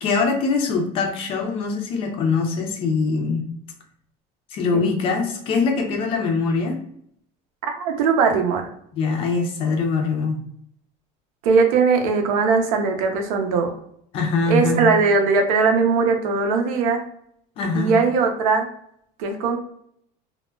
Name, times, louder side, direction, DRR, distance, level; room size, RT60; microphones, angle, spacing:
voice 1, 0.0-3.4 4.5-6.8 8.9-10.4 14.1-14.8 17.6-17.9, left 4 dB, 30° left, 3 dB, 0.4 m, -23 dB
voice 2, 7.7-8.7 11.4-13.7 14.5-17.0 17.7-18.7 19.2-19.6, right 4 dB, 85° right, 4 dB, 0.6 m, -19 dB
2.2 x 2.0 x 3.1 m, 0.68 s
cardioid pair, 180°, 18 cm